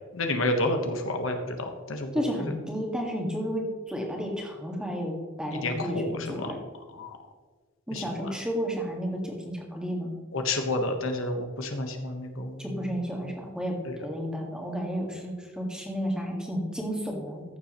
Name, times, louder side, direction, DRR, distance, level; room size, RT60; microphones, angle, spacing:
voice 1, 0.1-2.1 2.4-2.5 5.5-6.1 6.3-6.5 6.9-7.1 7.9-8.0 10.3-12.6 13.9-14.0, left 2 dB, 80° left, 4 dB, 1.3 m, -30 dB
voice 2, 2.1-6.6 7.9-10.1 12.6-17.4, equal, 5° right, 0 dB, 1.8 m, -32 dB
14.5 x 7.3 x 3.1 m, 1.4 s
head